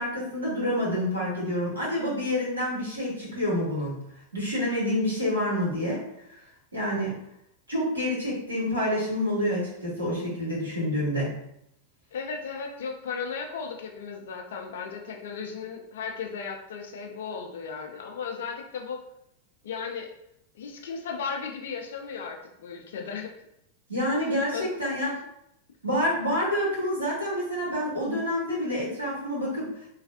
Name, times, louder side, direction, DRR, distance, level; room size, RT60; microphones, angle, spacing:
voice 1, 0.0-4.0 4.3-6.0 6.7-7.2 7.7-11.3 23.9-25.1 25.8-29.7, left 1 dB, 80° right, -6 dB, 1.3 m, -28 dB
voice 2, 12.1-19.0 19.6-20.1 20.5-23.3 24.5-25.0, left 5 dB, 60° left, 3 dB, 0.4 m, -35 dB
3.2 x 2.4 x 2.6 m, 0.77 s
figure-of-eight pair, 90°, 0 cm